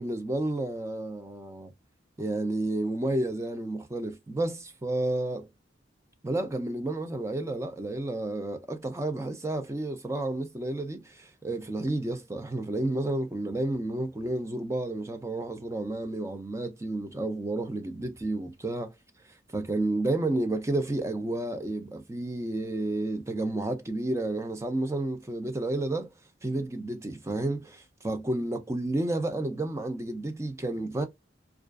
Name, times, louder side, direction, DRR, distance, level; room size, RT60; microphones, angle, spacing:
voice 1, 0.0-1.7 2.2-5.5 6.2-18.9 19.5-26.1 26.4-31.1, right 2 dB, 15° right, 0.4 m, -31 dB
2.4 x 2.3 x 2.2 m
head